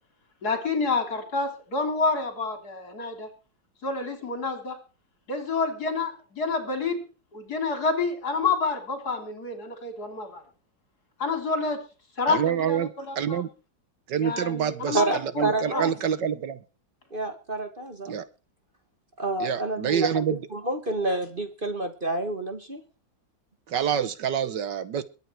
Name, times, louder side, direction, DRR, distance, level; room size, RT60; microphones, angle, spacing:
voice 1, 0.4-3.3 3.8-4.8 5.3-7.0 7.3-10.4 11.2-11.8 12.2-13.4 14.2-15.1 15.4-15.8, left 4 dB, 50° left, 6 dB, 3.9 m, -28 dB
voice 2, 12.3-13.5 14.1-16.6 18.0-18.2 19.4-20.4 23.7-25.0, right 8 dB, 65° right, 14 dB, 1.5 m, -27 dB
voice 3, 14.9-15.9 17.1-18.1 19.2-20.1 20.5-22.8, right 2 dB, 30° right, 7 dB, 1.8 m, -28 dB
22.5 x 9.1 x 4.6 m, 0.34 s
omnidirectional pair, 2.1 m